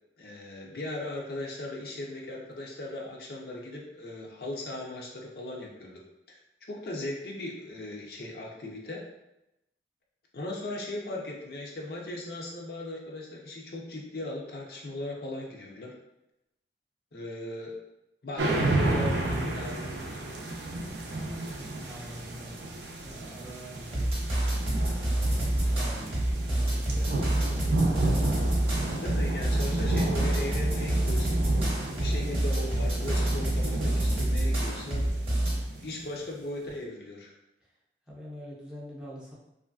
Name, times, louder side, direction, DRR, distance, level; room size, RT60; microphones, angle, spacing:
voice 1, 0.2-6.0 6.3-6.4 6.7-9.0 10.3-15.9 17.1-17.7 18.2-20.1 29.0-31.4 32.0-35.1 35.8-37.3, left 1 dB, 60° left, -2 dB, 0.5 m, -38 dB
sound 1, 18.4-36.2, right 2 dB, 75° right, 0.4 m, -32 dB
voice 2, 21.6-24.6 24.9-27.8 38.1-39.3, equal, 5° right, -6 dB, 0.5 m, -46 dB
sound 2, 23.9-35.6, right 1 dB, 30° right, 0.8 m, -27 dB
3.1 x 2.5 x 2.3 m, 0.87 s
head